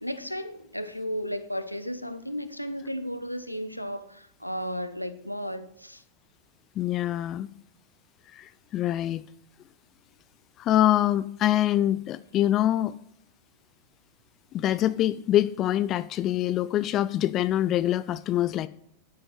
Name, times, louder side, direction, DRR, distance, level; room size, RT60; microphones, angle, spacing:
voice 1, 0.0-6.0, equal, 90° left, 1.1 m, -34 dB
voice 2, 6.8-7.5 8.3-9.2 10.6-13.0 14.5-18.7, left 13 dB, 35° left, 0.4 m, -25 dB
12.5 x 9.7 x 5.0 m
figure-of-eight pair, 90°, 0 cm